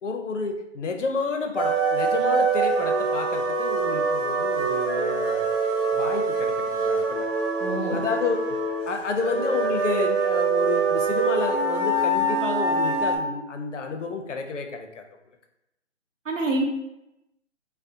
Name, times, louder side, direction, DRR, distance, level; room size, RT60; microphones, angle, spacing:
voice 1, 0.0-5.5 5.9-7.2 7.9-8.6 8.9-15.0, left 4 dB, 70° left, 4 dB, 0.5 m, -30 dB
sound 1, 1.6-13.2, right 3 dB, 50° right, 0.9 m, -24 dB
voice 2, 7.6-8.0 16.3-16.7, right 2 dB, 85° right, 2 dB, 0.7 m, -26 dB
2.4 x 2.0 x 2.6 m, 0.88 s
figure-of-eight pair, 175°, 38 cm